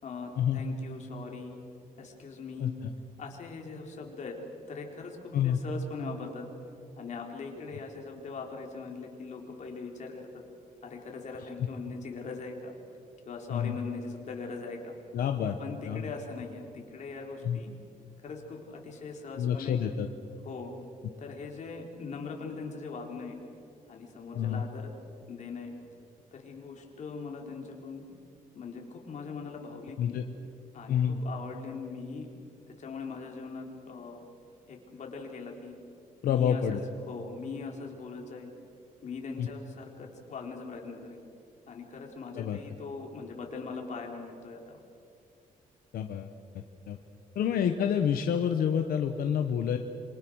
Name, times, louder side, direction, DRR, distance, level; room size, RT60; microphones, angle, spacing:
voice 1, 0.0-1.6 2.0-2.7 3.2-4.4 4.7-6.5 7.0-10.4 10.8-12.7 13.3-15.0 15.6-17.7 18.2-19.8 20.4-20.7 21.2-23.4 23.9-24.9 25.3-25.7 26.3-28.1 28.5-30.2 30.7-32.3 32.8-34.2 34.7-35.8 36.2-36.8 37.1-38.5 39.0-41.2 41.7-44.8, left 4 dB, 55° left, 1 dB, 3.9 m, -41 dB
voice 2, 15.1-15.6 15.8-16.1 17.4-17.6 19.4-20.1 24.3-24.6 30.0-30.2 30.9-31.2 36.2-36.8 39.4-39.5 42.3-42.6 45.9-46.3 46.9-47.0 47.3-49.8, left 8 dB, 85° left, 6 dB, 1.2 m, -28 dB
27.0 x 24.5 x 6.4 m, 2.5 s
cardioid pair, 145°, 15 cm